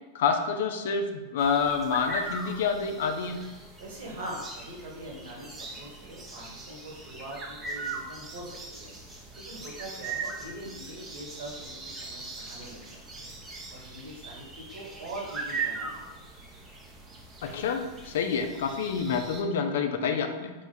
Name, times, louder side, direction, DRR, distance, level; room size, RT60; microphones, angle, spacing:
voice 1, 0.1-3.4 17.4-20.5, left 5 dB, 55° left, 5 dB, 0.4 m, -28 dB
sound 1, 1.4-19.4, right 4 dB, 20° right, 0.6 m, -40 dB
voice 2, 3.8-8.9 9.3-13.3 13.7-16.2, right 1 dB, 50° right, -2 dB, 1.1 m, -43 dB
4.5 x 2.0 x 4.1 m, 1.1 s
figure-of-eight pair, 90°, 0 cm